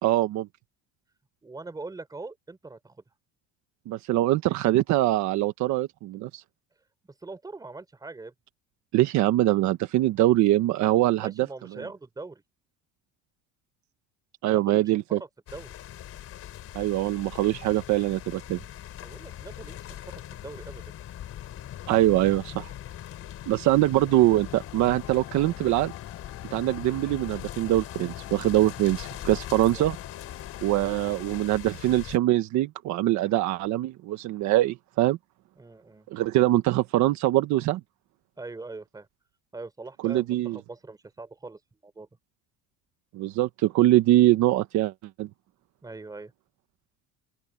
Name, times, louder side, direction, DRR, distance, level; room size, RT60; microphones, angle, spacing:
voice 1, 0.0-0.5 3.9-6.4 8.9-11.5 11.7-11.8 14.4-15.2 16.7-18.6 21.9-22.7 23.5-25.9 26.5-30.0 30.6-35.2 36.1-37.8 40.0-40.6 43.1-44.9 45.2-45.3, right 15 dB, 65° right, 1.4 m, -23 dB
voice 2, 1.4-3.0 7.0-8.3 11.2-12.4 14.5-15.8 19.0-20.8 23.6-23.7 29.7-29.8 35.6-36.1 38.4-39.1 39.5-42.1 45.8-46.3, right 3 dB, 10° right, 3.6 m, -42 dB
sound 1, 15.5-32.2, left 12 dB, 45° left, 4.6 m, -41 dB
sound 2, 24.1-31.5, left 21 dB, 80° left, 4.0 m, -47 dB
open air
cardioid pair, 155°, 32 cm